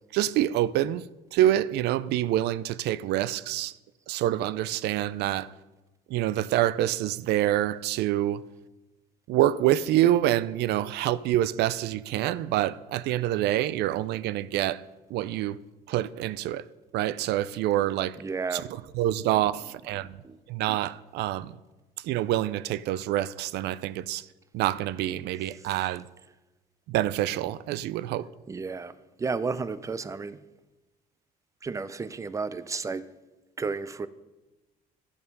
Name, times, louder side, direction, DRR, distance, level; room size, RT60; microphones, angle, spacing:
voice 1, 0.1-1.1 1.3-3.7 4.1-5.5 6.1-8.4 9.3-14.8 15.1-15.6 15.9-16.6 16.9-18.2 18.5-20.2 20.5-21.6 22.0-24.3 24.5-26.1 26.9-28.3, right 13 dB, 80° right, 0.4 m, -26 dB
voice 2, 18.2-18.7 20.2-20.4 28.5-28.9 29.2-30.4 31.6-33.1 33.6-34.1, right 4 dB, 20° right, 0.4 m, -32 dB
11.0 x 6.9 x 5.3 m
cardioid pair, 110°, 17 cm